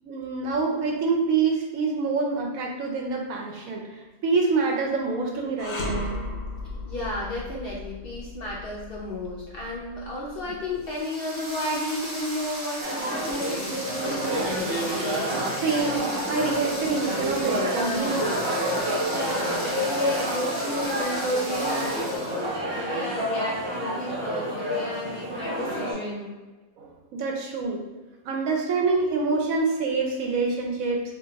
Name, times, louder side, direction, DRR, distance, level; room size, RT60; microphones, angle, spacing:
voice 1, 0.0-6.1 10.4-10.5 15.6-18.2 26.8-27.8 28.2-31.0, right 4 dB, 75° right, 1 dB, 1.0 m, -26 dB
sound 1, 5.6-10.8, left 1 dB, 75° left, 1.1 m, -35 dB
voice 2, 6.7-15.2 19.0-26.3, left 1 dB, 55° left, -5 dB, 0.7 m, -32 dB
sound 2, 10.8-22.5, equal, 25° right, 0.3 m, -37 dB
sound 3, 12.8-25.9, equal, 45° right, 1.1 m, -29 dB
3.1 x 2.4 x 3.9 m, 1.2 s
omnidirectional pair, 1.5 m